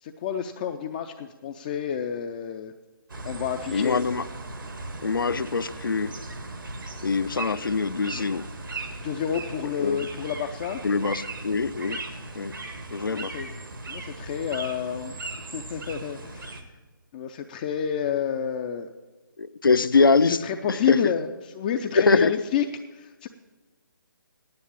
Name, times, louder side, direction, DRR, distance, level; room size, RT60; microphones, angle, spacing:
voice 1, 0.0-2.7 3.2-4.0 9.0-10.8 13.1-13.5 13.9-15.1 15.5-16.6 17.1-18.9 20.4-22.7 22.9-23.3, left 8 dB, 25° left, 5 dB, 0.4 m, -29 dB
sound 1, 3.1-16.6, right 2 dB, 75° right, 1.6 m, -38 dB
voice 2, 3.7-4.3 5.0-6.2 7.0-8.5 9.8-10.0 10.8-12.0 12.3-12.5 12.9-13.3 19.4-20.4 20.7-21.0 21.9-22.3, left 4 dB, 75° left, 14 dB, 0.6 m, -23 dB
9.6 x 8.3 x 8.6 m, 1.3 s
figure-of-eight pair, 150°, 11 cm